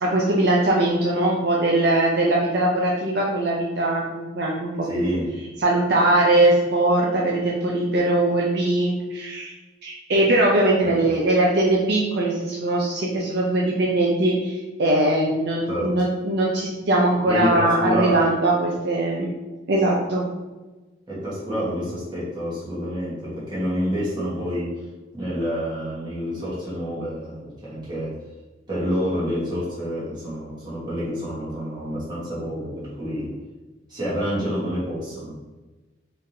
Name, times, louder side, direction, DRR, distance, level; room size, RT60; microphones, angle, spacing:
voice 1, 0.0-5.1 5.6-9.5 9.8-19.3 19.7-20.3, right 1 dB, 55° right, -3 dB, 0.5 m, -21 dB
voice 2, 4.8-5.3 10.8-11.0 15.7-15.9 17.2-18.2 21.1-24.8 25.1-28.1 28.7-33.3 33.9-35.3, equal, 20° right, -8 dB, 1.4 m, -28 dB
4.3 x 3.3 x 2.7 m, 1.2 s
head